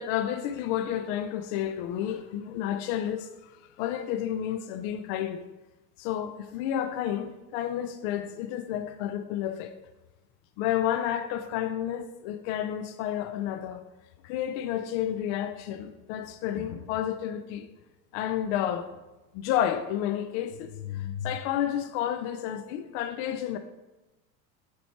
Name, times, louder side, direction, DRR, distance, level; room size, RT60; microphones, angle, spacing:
voice 1, 0.0-3.3 3.8-5.4 6.0-9.8 10.6-13.8 14.2-17.7 18.1-18.9 19.3-23.6, left 10 dB, 55° left, 0.5 m, -31 dB
7.3 x 4.4 x 4.5 m
supercardioid pair, 150°, 41 cm